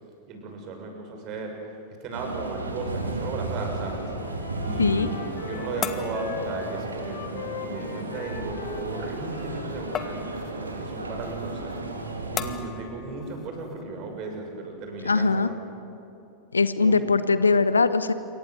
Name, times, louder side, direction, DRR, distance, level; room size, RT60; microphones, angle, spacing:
voice 1, 0.3-1.5 2.0-4.1 4.6-10.4 10.8-11.8 12.3-15.6 16.8-17.0, right 3 dB, 40° right, 3 dB, 6.9 m, -35 dB
sound 1, 2.1-12.5, right 2 dB, 80° right, 3.1 m, -34 dB
sound 2, 3.5-14.3, left 7 dB, 25° left, 1.6 m, -40 dB
Wind instrument woodwind instrument, 3.8-10.1, left 6 dB, 55° left, 3.3 m, -40 dB
voice 2, 15.0-15.5 16.5-18.1, left 4 dB, 75° left, 14 dB, 1.0 m, -21 dB
27.5 x 24.0 x 8.1 m, 3.0 s
figure-of-eight pair, 90°, 0 cm